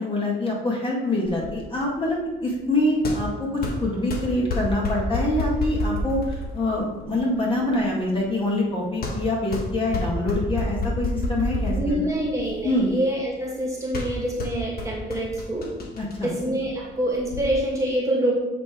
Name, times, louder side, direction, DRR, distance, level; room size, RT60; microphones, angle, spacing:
voice 1, 0.0-12.1 12.6-12.9 15.9-16.3, left 1 dB, 25° left, -4 dB, 2.0 m, -25 dB
sound 1, 1.2-17.4, left 2 dB, 50° left, 1.5 m, -31 dB
voice 2, 11.7-15.7 16.2-18.3, right 1 dB, 15° right, -3 dB, 2.1 m, -26 dB
8.2 x 3.4 x 4.6 m, 1.1 s
cardioid pair, 90°, 20 cm